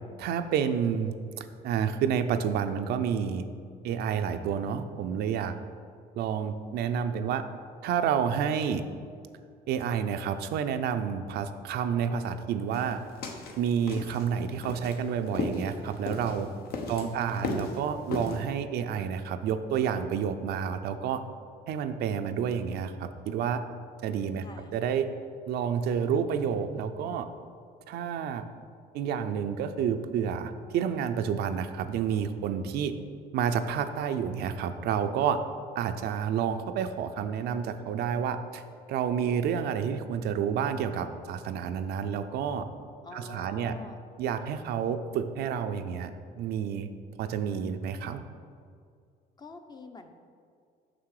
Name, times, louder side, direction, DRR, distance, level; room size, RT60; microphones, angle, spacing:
voice 1, 0.2-3.5 3.8-5.5 6.2-7.4 7.8-8.8 9.7-13.0 13.6-16.5 16.9-21.2 21.7-23.6 24.0-24.4 24.7-25.1 25.5-27.3 27.9-28.4 28.9-32.9 33.3-35.4 35.8-38.6 38.9-42.7 43.1-43.7 44.2-46.1 46.4-46.9 47.2-48.2, right 7 dB, 75° right, 8 dB, 0.5 m, -29 dB
sound 1, 12.7-18.4, left 3 dB, 65° left, 1.0 m, -36 dB
voice 2, 16.7-17.7 24.4-24.7 43.0-44.0 49.4-50.1, left 3 dB, 25° left, 6 dB, 0.6 m, -46 dB
6.2 x 5.9 x 4.8 m, 2.3 s
cardioid pair, 110°, 17 cm